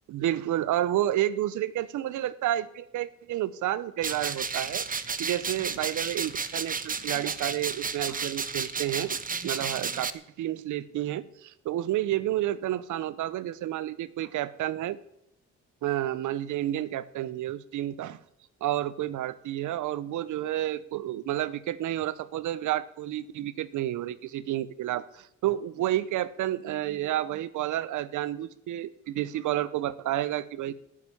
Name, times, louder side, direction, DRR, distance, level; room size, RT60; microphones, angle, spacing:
voice 1, 0.1-4.9 5.2-9.2 9.4-15.0 15.8-18.2 18.6-30.7, right 13 dB, 80° right, 18 dB, 0.9 m, -30 dB
sound 1, 4.0-10.1, right 5 dB, 30° right, 1.0 m, -32 dB
15.5 x 7.5 x 9.9 m, 0.81 s
cardioid pair, 90°, 30 cm